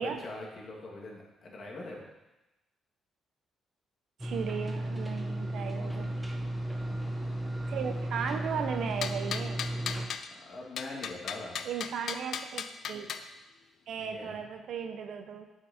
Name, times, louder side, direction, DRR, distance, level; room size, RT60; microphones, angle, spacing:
voice 1, 0.2-2.0 5.8-6.3 10.3-11.6 14.0-14.5, left 2 dB, 50° left, -2 dB, 2.1 m, -43 dB
sound 1, 4.2-10.1, right 1 dB, 5° right, 1.0 m, -34 dB
voice 2, 4.2-6.2 7.7-9.6 11.6-13.1 13.9-15.4, right 7 dB, 70° right, 7 dB, 0.8 m, -36 dB
sound 2, 9.0-10.3 10.8-13.3, left 7 dB, 65° left, 0.4 m, -37 dB
7.9 x 6.0 x 4.3 m, 1.0 s
cardioid pair, 90°, 0 cm